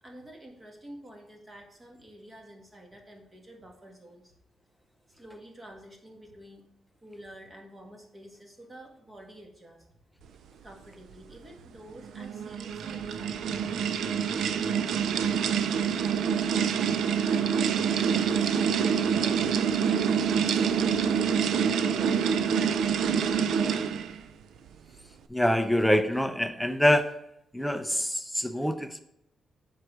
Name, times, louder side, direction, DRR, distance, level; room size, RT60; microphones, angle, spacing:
voice 1, 0.0-4.3 5.2-6.6 7.0-9.9 10.6-15.6 16.5-16.8 17.3-19.5 20.3-20.6 21.5-23.1, equal, 20° right, 1 dB, 1.8 m, -49 dB
sound 1, 12.0-24.2, right 7 dB, 85° right, 0.5 m, -26 dB
voice 2, 25.3-27.2 27.5-29.0, left 1 dB, ahead, 9 dB, 0.6 m, -25 dB
7.6 x 4.7 x 6.3 m, 0.80 s
cardioid pair, 140°, 0 cm